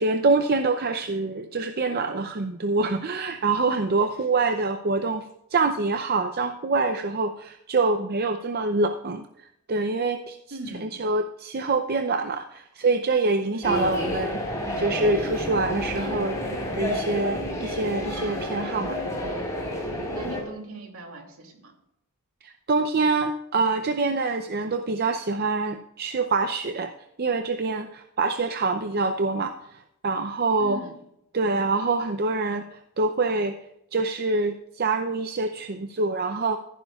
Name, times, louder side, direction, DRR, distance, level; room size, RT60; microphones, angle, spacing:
voice 1, 0.0-5.2 5.5-19.0 22.4-26.9 27.2-30.8 31.3-33.6 33.9-36.6, right 3 dB, 45° right, 7 dB, 0.6 m, -25 dB
voice 2, 10.5-11.0 13.5-13.9 20.1-21.7 30.6-30.9, right 2 dB, 70° right, 2 dB, 2.7 m, -39 dB
sound 1, 13.6-20.4, equal, 15° left, 4.0 m, -30 dB
14.5 x 11.5 x 2.4 m, 0.79 s
head